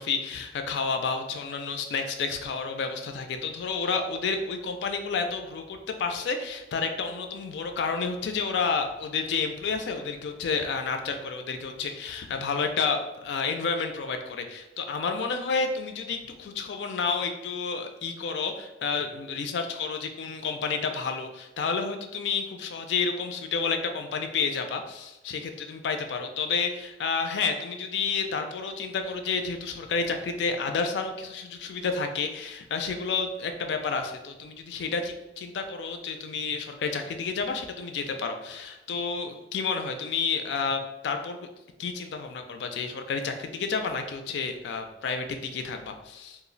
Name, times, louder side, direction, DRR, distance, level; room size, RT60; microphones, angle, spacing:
voice 1, 0.0-41.4 41.8-46.4, left 5 dB, 70° left, 6 dB, 0.3 m, -30 dB
2.4 x 2.0 x 3.8 m, 0.98 s
head